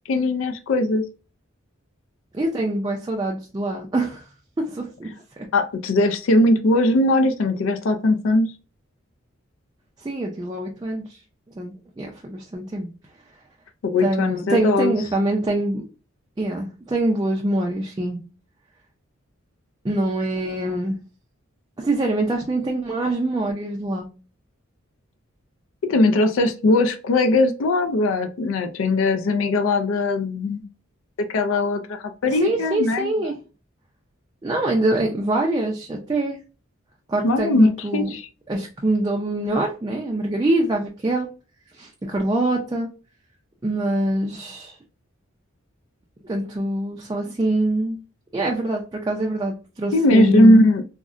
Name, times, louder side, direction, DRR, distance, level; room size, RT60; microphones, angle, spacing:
voice 1, 0.1-1.0 5.5-8.5 13.8-14.9 25.9-30.6 31.3-33.3 37.2-38.3 49.9-50.8, left 2 dB, 70° left, 7 dB, 0.4 m, -19 dB
voice 2, 2.3-4.2 4.6-5.1 5.4-5.5 10.0-11.2 11.6-12.9 14.0-15.8 16.4-18.2 19.8-21.0 21.8-24.1 32.3-33.4 34.4-36.4 37.1-38.1 38.5-41.3 41.7-42.9 43.6-44.8 46.2-48.0 48.3-50.6, right 1 dB, 20° right, 0 dB, 0.4 m, -24 dB
3.7 x 2.1 x 2.4 m, 0.34 s
head